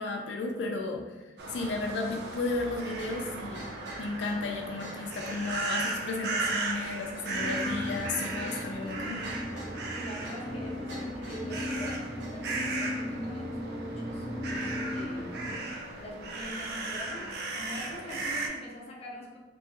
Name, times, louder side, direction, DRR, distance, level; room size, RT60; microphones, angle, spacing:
voice 1, 0.0-3.6 4.0-9.3, left 3 dB, 85° left, 2 dB, 0.3 m, -34 dB
sound 1, 1.4-18.5, right 3 dB, 65° right, 0.4 m, -36 dB
sound 2, 3.0-12.5, right 1 dB, 90° right, 0.9 m, -47 dB
sound 3, 7.3-15.6, left 1 dB, 15° right, 0.5 m, -37 dB
voice 2, 9.9-15.4 16.0-17.3 17.5-19.4, left 1 dB, 35° left, -2 dB, 0.6 m, -44 dB
3.0 x 2.8 x 2.3 m, 1.2 s
head